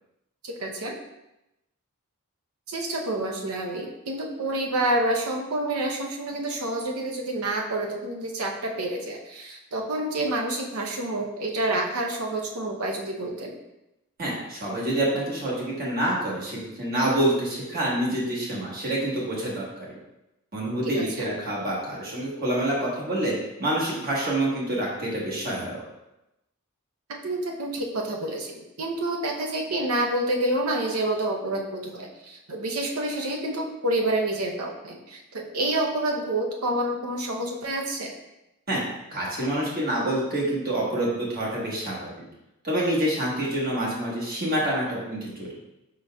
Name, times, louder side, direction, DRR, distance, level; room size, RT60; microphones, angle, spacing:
voice 1, 0.4-1.0 2.7-13.6 20.8-21.3 27.2-38.1, right 1 dB, 85° right, 1 dB, 0.7 m, -28 dB
voice 2, 14.2-20.0 20.5-23.3 23.6-25.8 38.7-38.8 39.1-42.1 42.6-45.5, right 1 dB, 45° right, -5 dB, 1.1 m, -27 dB
4.7 x 3.8 x 2.2 m, 0.92 s
head